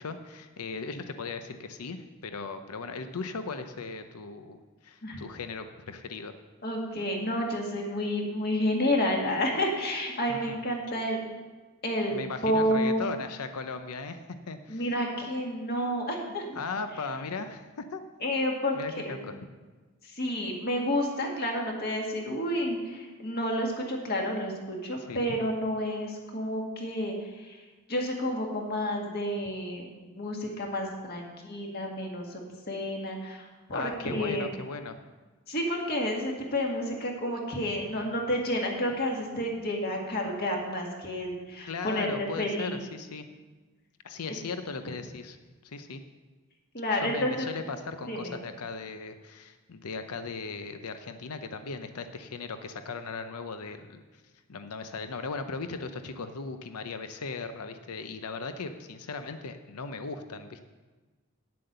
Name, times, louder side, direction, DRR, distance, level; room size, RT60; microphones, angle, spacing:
voice 1, 0.0-4.6 4.8-6.3 10.3-10.6 12.1-14.9 16.5-18.0 18.7-19.4 25.0-25.4 33.7-34.9 41.7-43.3 44.0-45.4 45.6-46.0 46.9-54.0 54.5-60.6, left 4 dB, 90° left, 9 dB, 0.7 m, -37 dB
voice 2, 6.6-11.2 11.8-12.2 12.4-13.0 14.7-16.6 18.2-19.3 20.1-27.6 27.9-29.9 30.2-32.4 32.7-33.4 33.7-34.5 35.5-42.1 42.4-42.8 46.7-47.5 48.1-48.4, equal, 45° left, 0 dB, 1.9 m, -30 dB
9.6 x 7.7 x 6.7 m, 1.3 s
head